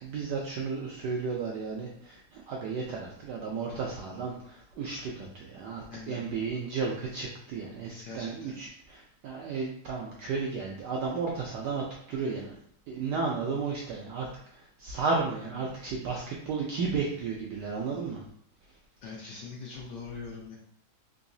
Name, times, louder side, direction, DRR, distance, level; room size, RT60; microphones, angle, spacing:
voice 1, 0.0-12.6 12.9-14.3 14.5-18.2, right 4 dB, 80° right, -2 dB, 0.9 m, -33 dB
voice 2, 5.9-6.3 8.0-8.5 15.9-16.0 19.0-20.6, left 4 dB, 70° left, -2 dB, 1.0 m, -42 dB
3.9 x 2.7 x 2.6 m, 0.66 s
omnidirectional pair, 2.3 m